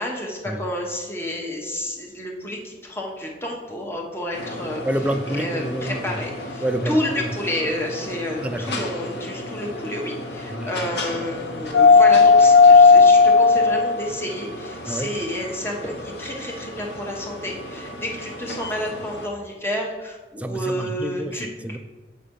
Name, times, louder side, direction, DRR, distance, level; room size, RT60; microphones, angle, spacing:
voice 1, 0.0-4.8 5.3-21.5, left 1 dB, 15° left, -1 dB, 0.9 m, -30 dB
sound 1, 4.3-19.3, left 4 dB, 70° left, 0.8 m, -20 dB
voice 2, 4.8-6.2 6.6-7.3 8.4-8.8 10.5-10.8 14.9-15.1 20.4-21.8, right 1 dB, 10° right, 7 dB, 0.3 m, -28 dB
6.6 x 4.5 x 5.1 m, 1.3 s
head